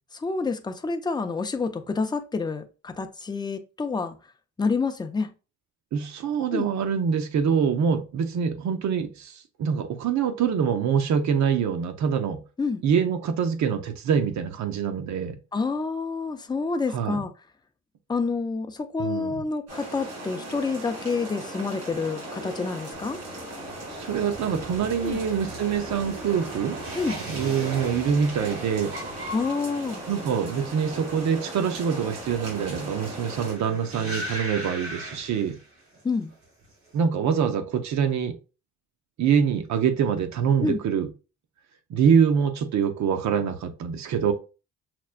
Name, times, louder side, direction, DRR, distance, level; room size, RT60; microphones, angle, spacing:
voice 1, 0.1-4.1 4.6-5.3 6.5-6.7 12.6-12.8 15.5-17.3 18.1-23.2 25.0-25.2 26.9-27.2 29.3-30.0 36.0-36.3 40.6-40.8, left 4 dB, 15° left, 0.5 m, -28 dB
voice 2, 5.9-12.4 12.8-15.4 16.9-17.2 19.0-19.4 23.9-26.8 27.3-28.9 30.1-35.6 36.9-38.4 39.2-41.1 41.9-44.3, right 7 dB, 65° right, 0.7 m, -25 dB
sound 1, 19.7-33.5, right 1 dB, 90° right, 2.0 m, -38 dB
sound 2, 22.9-36.0 36.3-36.9, right 1 dB, 45° right, 1.7 m, -39 dB
5.8 x 2.2 x 2.4 m
cardioid pair, 90°, 30 cm